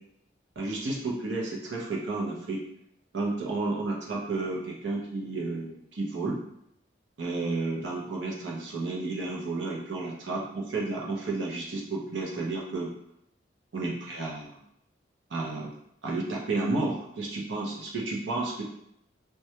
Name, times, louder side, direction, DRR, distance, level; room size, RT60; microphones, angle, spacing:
voice 1, 0.6-2.6 3.1-6.4 7.2-12.9 13.7-14.6 15.3-15.7 16.0-18.6, right 3 dB, 75° right, -3 dB, 0.6 m, -32 dB
2.2 x 2.1 x 2.8 m, 0.76 s
head